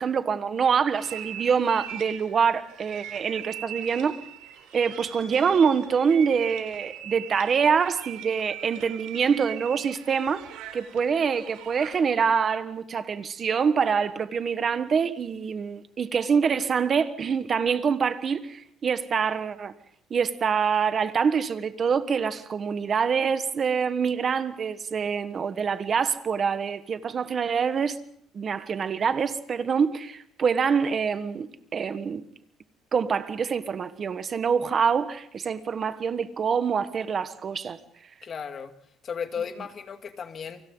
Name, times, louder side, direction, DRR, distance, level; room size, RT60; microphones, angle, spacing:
voice 1, 0.0-4.2 4.7-19.7 20.1-28.0 28.3-32.2 32.9-37.8, right 6 dB, 35° right, 1.4 m, -25 dB
sound 1, 0.9-12.1, right 11 dB, 85° right, 4.0 m, -41 dB
voice 2, 38.2-38.7 39.0-40.6, left 6 dB, 35° left, 2.1 m, -35 dB
29.0 x 24.5 x 4.0 m
cardioid pair, 135°, 0 cm